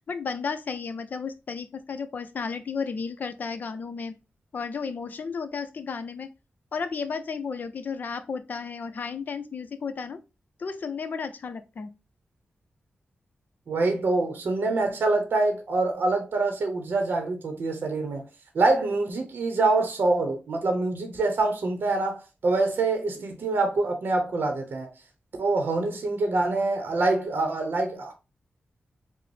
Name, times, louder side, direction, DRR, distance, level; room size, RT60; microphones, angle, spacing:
voice 1, 0.1-4.1 4.5-6.3 6.7-10.2 10.6-11.9, left 5 dB, 55° left, 0.5 m, -33 dB
voice 2, 13.7-18.2 18.5-24.9 25.4-28.1, right 3 dB, 65° right, 0.7 m, -25 dB
4.9 x 2.0 x 3.2 m
wide cardioid pair, 170°, 4 cm